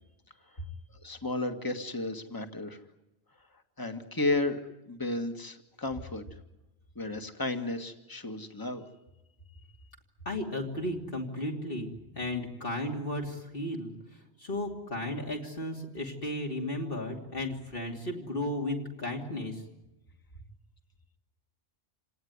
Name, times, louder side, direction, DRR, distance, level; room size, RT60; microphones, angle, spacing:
voice 1, 0.9-2.8 3.8-4.6 4.9-6.2 7.0-8.8, left 2 dB, 20° left, 6 dB, 1.8 m, -33 dB
voice 2, 10.2-19.6, left 1 dB, 50° left, 0 dB, 3.1 m, -34 dB
28.0 x 18.5 x 9.6 m, 1.0 s
omnidirectional pair, 1.2 m